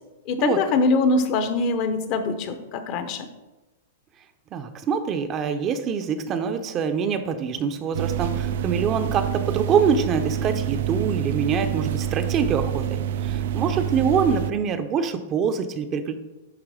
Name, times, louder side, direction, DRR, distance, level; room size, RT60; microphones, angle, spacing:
voice 1, 0.3-3.3, left 3 dB, 45° left, 9 dB, 0.9 m, -23 dB
voice 2, 4.5-16.2, right 6 dB, 30° right, 8 dB, 0.6 m, -25 dB
sound 1, 7.9-14.5, right 10 dB, 65° right, 0.3 m, -27 dB
9.9 x 3.4 x 4.9 m, 1.1 s
hypercardioid pair, 125°, 0 cm